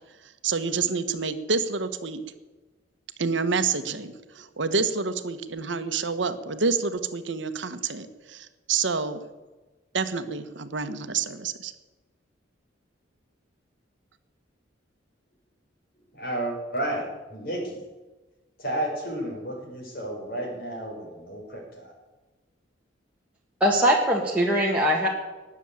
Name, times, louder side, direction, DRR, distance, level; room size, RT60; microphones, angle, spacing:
voice 1, 0.4-2.2 3.2-9.2 9.9-11.7, right 4 dB, 75° right, 10 dB, 1.3 m, -28 dB
voice 2, 16.1-17.8 18.6-21.9, right 1 dB, 55° left, 0 dB, 5.5 m, -32 dB
voice 3, 23.6-25.1, equal, 5° right, -3 dB, 1.7 m, -21 dB
19.0 x 7.4 x 8.7 m, 1.2 s
head